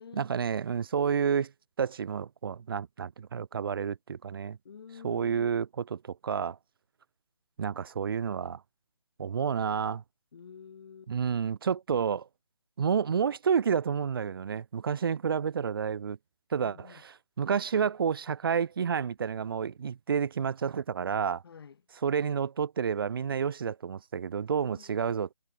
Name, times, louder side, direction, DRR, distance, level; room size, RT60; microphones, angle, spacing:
voice 1, 0.1-1.5 1.8-4.6 5.0-6.6 7.6-8.6 9.2-10.0 11.1-12.3 12.8-16.2 16.5-21.4 22.0-25.3, right 7 dB, 40° right, 2.8 m, -30 dB
voice 2, 4.6-5.6 10.3-11.1 16.6-17.0 21.4-21.8 24.6-25.1, left 6 dB, 45° left, 7.0 m, -49 dB
figure-of-eight pair, 160°, 17 cm